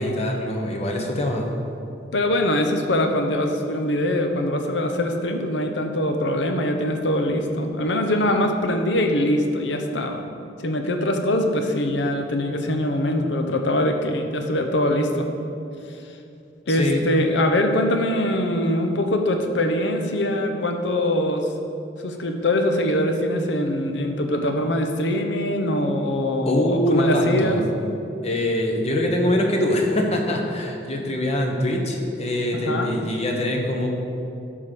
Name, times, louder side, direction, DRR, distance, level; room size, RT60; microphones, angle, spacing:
voice 1, 0.0-1.5 16.7-17.0 26.5-27.6 28.2-33.9, left 1 dB, 35° left, 2 dB, 1.0 m, -23 dB
voice 2, 2.1-10.2 10.6-15.3 16.7-21.5 22.0-27.6 32.5-33.0, left 1 dB, 75° left, 4 dB, 0.8 m, -23 dB
11.0 x 3.8 x 6.8 m, 2.7 s
head